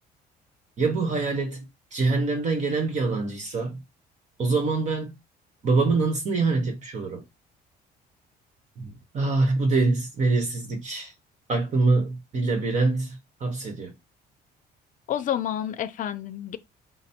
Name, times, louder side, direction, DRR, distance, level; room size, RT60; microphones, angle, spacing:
voice 1, 0.8-3.8 4.4-5.1 5.6-7.2 8.8-11.1 11.5-13.9, right 3 dB, 45° right, 1.3 m, -25 dB
voice 2, 15.1-16.6, left 10 dB, 50° left, 0.6 m, -29 dB
5.1 x 2.1 x 4.3 m
cardioid pair, 130°, 18 cm